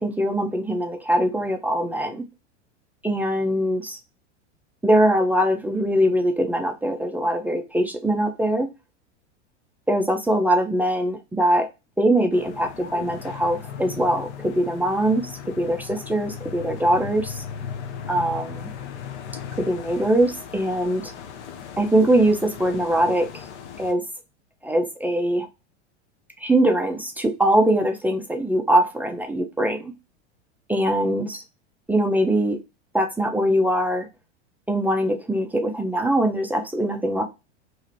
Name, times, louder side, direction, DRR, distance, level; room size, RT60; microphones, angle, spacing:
voice 1, 0.0-2.2 3.0-4.0 4.8-8.7 9.9-11.7 12.0-17.4 18.1-18.7 19.6-21.1 21.8-23.4 23.8-24.0 24.6-25.5 26.4-29.9 30.7-31.4 31.9-32.6 32.9-34.1 34.7-37.2, right 1 dB, 5° right, 0.3 m, -22 dB
sound 1, 12.3-23.9, left 7 dB, 70° left, 0.7 m, -37 dB
3.0 x 2.4 x 4.2 m
hypercardioid pair, 100°, 35 cm